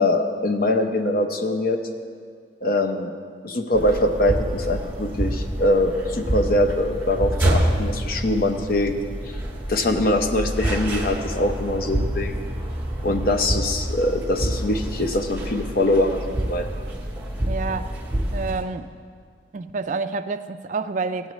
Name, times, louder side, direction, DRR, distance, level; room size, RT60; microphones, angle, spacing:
voice 1, 0.0-1.8 2.6-3.1 3.4-8.9 9.7-12.4 13.0-16.7, left 1 dB, 50° left, 5 dB, 0.7 m, -23 dB
sound 1, 3.7-18.6, right 1 dB, 10° right, 1.0 m, -27 dB
voice 2, 17.5-18.0 18.3-18.9 19.5-21.3, right 4 dB, 40° right, 9 dB, 0.3 m, -28 dB
15.5 x 8.7 x 3.1 m, 2.1 s
head